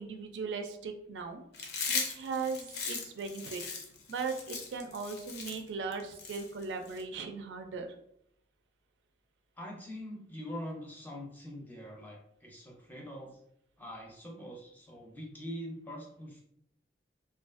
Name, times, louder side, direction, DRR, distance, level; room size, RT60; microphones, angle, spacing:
voice 1, 0.0-1.4 1.9-3.6 4.1-7.9, right 4 dB, 90° right, 5 dB, 0.4 m, -38 dB
Chewing mastication, 1.5-7.0, left 5 dB, 65° left, 0.5 m, -38 dB
voice 2, 9.6-13.4 13.8-16.4, equal, 10° left, -2 dB, 0.4 m, -43 dB
2.4 x 2.3 x 2.4 m, 0.72 s
head